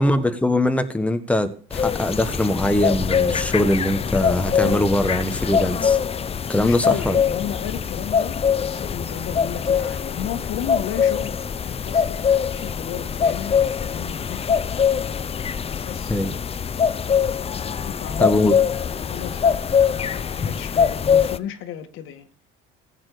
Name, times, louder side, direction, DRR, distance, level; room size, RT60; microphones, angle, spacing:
voice 1, 0.0-6.0 6.5-7.2 16.1-16.3 18.2-18.5, left 1 dB, 5° left, 1.5 m, -21 dB
sound 1, 1.7-21.4, left 7 dB, 30° left, 0.7 m, -23 dB
voice 2, 6.5-11.4 11.6-14.6 15.9-16.2 17.7-18.5 18.9-19.6 19.9-22.3, left 9 dB, 70° left, 2.0 m, -34 dB
15.5 x 9.0 x 6.7 m
cardioid pair, 120°, 21 cm